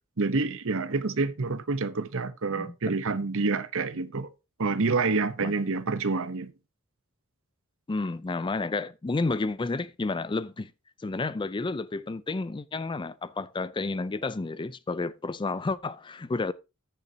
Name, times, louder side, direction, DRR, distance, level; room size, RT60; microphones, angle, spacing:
voice 1, 0.2-4.3 4.6-6.5, right 3 dB, 65° right, 0.9 m, -28 dB
voice 2, 2.5-3.0 5.4-5.5 7.9-10.7 11.0-16.5, left 3 dB, 20° left, 0.4 m, -31 dB
14.5 x 6.8 x 2.8 m
head